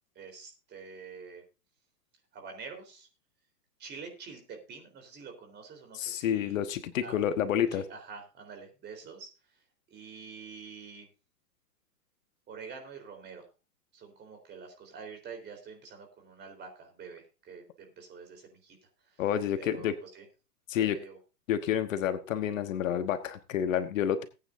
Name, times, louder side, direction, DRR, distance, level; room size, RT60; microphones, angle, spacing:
voice 1, 0.2-1.4 2.3-3.1 3.8-6.6 7.0-7.2 7.5-9.3 9.9-11.1 12.5-13.4 13.9-18.8 19.0-19.2 19.6-20.3 20.7-21.2, right 5 dB, 20° right, 4 dB, 3.9 m, -47 dB
voice 2, 5.9-7.8 19.2-19.9 20.7-21.0 21.5-24.2, left 9 dB, 55° left, 9 dB, 1.3 m, -29 dB
19.0 x 9.2 x 2.6 m, 0.30 s
hypercardioid pair, 125°, 48 cm